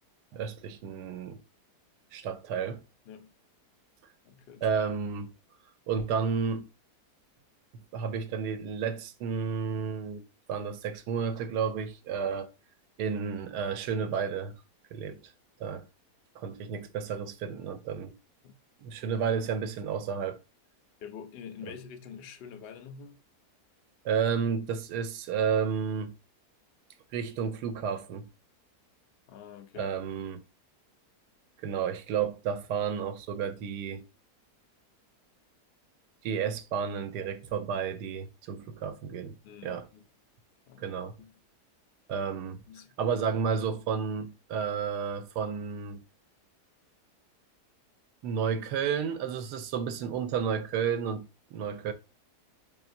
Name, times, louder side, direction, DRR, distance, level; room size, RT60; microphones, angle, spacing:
voice 1, 0.3-1.4 2.1-2.8 4.6-5.3 5.9-6.7 7.7-10.2 10.5-12.5 13.0-14.6 14.9-15.3 15.6-15.9 16.4-18.2 18.8-20.4 21.6-21.7 24.0-26.1 27.1-28.3 29.8-30.4 31.6-34.0 36.2-39.4 39.6-39.9 40.8-41.2 42.1-42.6 43.0-46.0 48.2-51.9, right 6 dB, 85° right, 1.2 m, -31 dB
voice 2, 4.3-4.7 18.4-18.5 21.0-23.2 29.3-29.9 39.4-40.0 40.7-41.3 42.7-43.0, left 7 dB, 80° left, 0.5 m, -46 dB
4.8 x 2.8 x 2.5 m
omnidirectional pair, 1.7 m